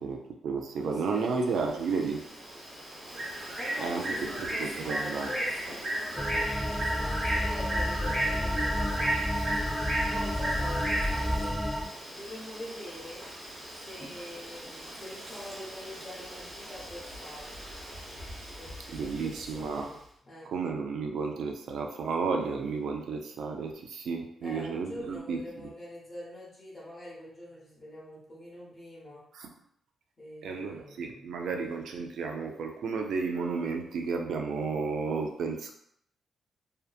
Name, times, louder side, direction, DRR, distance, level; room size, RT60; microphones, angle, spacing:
voice 1, 0.0-2.2 3.8-5.3 18.9-19.9 20.5-25.4 29.3-29.5 30.4-35.7, right 4 dB, 80° right, 3 dB, 0.3 m, -32 dB
voice 2, 0.7-1.6 3.6-9.3 10.1-11.6 12.1-13.3 13.8-17.7 18.4-20.0 20.2-20.5 24.4-29.2 30.2-31.3, left 1 dB, 30° left, -6 dB, 1.0 m, -44 dB
Bird, 1.1-19.8, right 1 dB, 40° right, 1.0 m, -36 dB
sound 1, 6.2-11.9, equal, ahead, 0.3 m, -30 dB
2.7 x 2.1 x 2.3 m, 0.70 s
cardioid pair, 105°, 0 cm